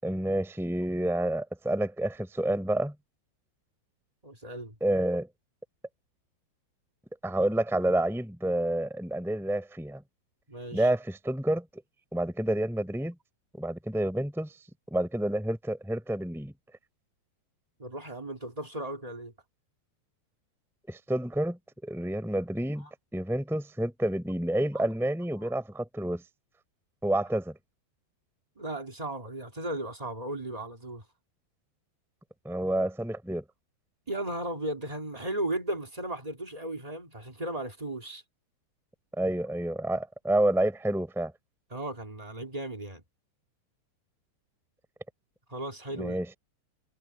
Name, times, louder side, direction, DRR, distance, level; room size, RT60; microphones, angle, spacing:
voice 1, 0.0-2.9 4.8-5.3 7.2-10.0 10.7-11.6 12.1-13.1 13.5-14.5 14.9-16.5 20.9-22.9 23.1-26.2 27.0-27.5 32.4-33.4 39.2-41.3 46.0-46.3, right 1 dB, ahead, 4.9 m, -29 dB
voice 2, 4.2-4.7 10.5-10.9 17.8-19.3 22.8-22.9 24.7-24.8 25.4-25.5 28.5-31.0 34.1-38.2 41.7-43.0 45.5-46.2, right 1 dB, 20° right, 1.0 m, -36 dB
omnidirectional pair, 5.4 m